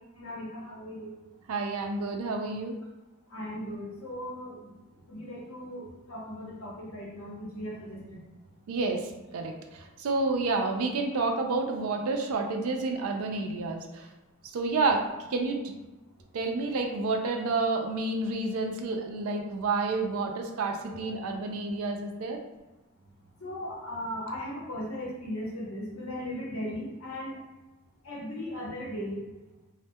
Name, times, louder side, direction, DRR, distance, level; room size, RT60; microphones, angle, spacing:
voice 1, 0.2-1.2 3.3-4.7 5.1-8.2 23.4-27.4 28.0-29.2, equal, 65° left, -5 dB, 0.8 m, -37 dB
voice 2, 1.5-2.8 8.7-14.1 14.5-15.6 16.3-22.4, right 3 dB, 75° right, 3 dB, 0.4 m, -29 dB
2.2 x 2.1 x 2.6 m, 1.1 s
head